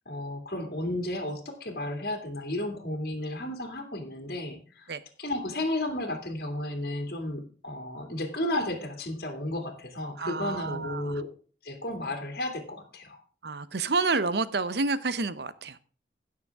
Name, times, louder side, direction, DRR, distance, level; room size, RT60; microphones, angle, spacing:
voice 1, 0.1-4.9 5.2-11.3 11.6-13.2, left 1 dB, 55° left, 2.5 m, -33 dB
voice 2, 10.2-11.2 13.4-15.8, right 3 dB, 65° right, 0.8 m, -29 dB
16.5 x 6.8 x 3.6 m
head